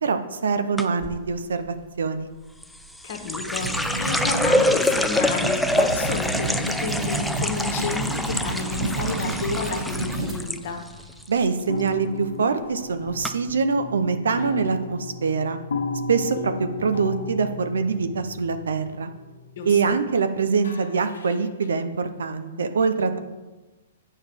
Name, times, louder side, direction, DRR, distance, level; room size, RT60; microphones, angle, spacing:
voice 1, 0.0-2.3 11.3-15.6 16.1-19.1 19.6-23.2, right 5 dB, 75° right, 9 dB, 0.6 m, -24 dB
sound 1, 0.8-1.2 2.6-10.6 10.9-11.5 11.8-12.1 12.8-12.9 13.2-13.3, left 1 dB, ahead, 0.4 m, -26 dB
voice 2, 3.0-10.8 19.6-19.8, left 5 dB, 55° left, 4 dB, 1.2 m, -31 dB
sound 2, 3.3-10.3, right 3 dB, 30° right, 2.2 m, -30 dB
sound 3, 7.8-10.7 11.0-11.1 11.7-20.2 20.6-21.7, left 3 dB, 80° left, 0.9 m, -36 dB
8.1 x 5.4 x 3.5 m, 1.2 s
hypercardioid pair, 125°, 0 cm